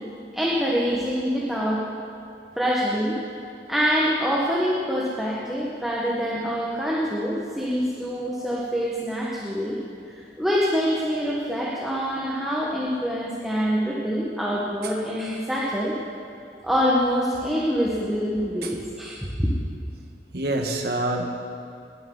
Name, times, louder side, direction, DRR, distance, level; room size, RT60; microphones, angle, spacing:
voice 1, 0.3-1.8 2.6-3.2 3.7-9.8 10.1-15.9 16.6-19.6, equal, ahead, -6 dB, 1.4 m, -25 dB
voice 2, 20.3-21.3, right 2 dB, 65° right, 2 dB, 1.5 m, -26 dB
20.0 x 12.0 x 4.0 m, 2.5 s
head